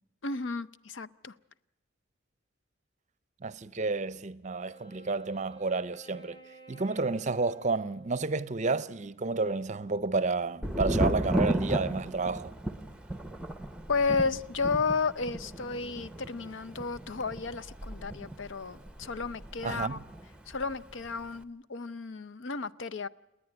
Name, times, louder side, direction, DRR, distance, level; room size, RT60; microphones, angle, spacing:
voice 1, 0.2-1.3 13.9-20.0 20.5-23.1, left 4 dB, 70° left, 0.6 m, -32 dB
voice 2, 3.4-6.4 6.7-12.5 19.6-19.9, right 3 dB, 40° right, 0.6 m, -30 dB
Wind instrument woodwind instrument, 4.4-9.0, equal, 25° left, 3.2 m, -54 dB
Thunder, 10.6-20.3 20.5-21.3, right 1 dB, 5° right, 0.8 m, -34 dB
29.0 x 9.9 x 9.9 m
head